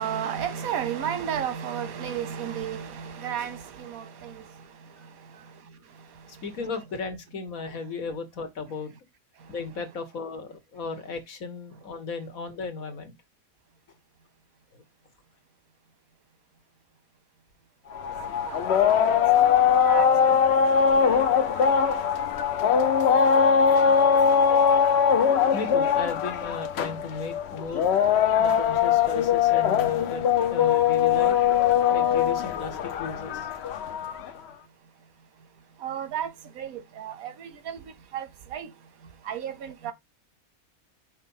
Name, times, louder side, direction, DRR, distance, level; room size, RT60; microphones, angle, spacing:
voice 1, 0.0-4.4 18.5-19.1 19.3-19.4 19.8-20.1 21.0-21.2 21.6-21.7 35.8-36.3 36.6-37.8 38.1-38.2 38.5-38.7 39.3-39.9, right 9 dB, 90° right, 1.4 m, -32 dB
voice 2, 6.3-8.9 9.5-13.1 14.7-14.8 25.5-27.9 28.4-31.4 31.9-33.5, left 4 dB, 80° left, 1.8 m, -35 dB
sound 1, 17.9-34.3, left 7 dB, 60° left, 0.9 m, -21 dB
5.4 x 3.3 x 5.4 m
omnidirectional pair, 1.4 m